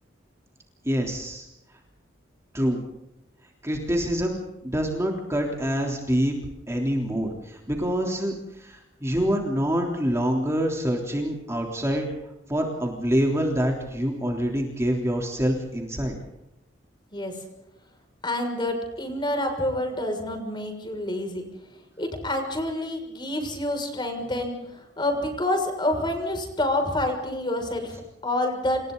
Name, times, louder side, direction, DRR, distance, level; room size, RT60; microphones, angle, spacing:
voice 1, 0.8-1.5 2.5-2.8 3.6-4.4 4.6-6.4 6.7-12.1 12.5-16.2, equal, 15° right, 0 dB, 3.6 m, -26 dB
voice 2, 18.2-21.4 22.0-28.8, left 1 dB, 25° left, 4 dB, 6.4 m, -28 dB
30.0 x 28.5 x 4.1 m, 0.89 s
head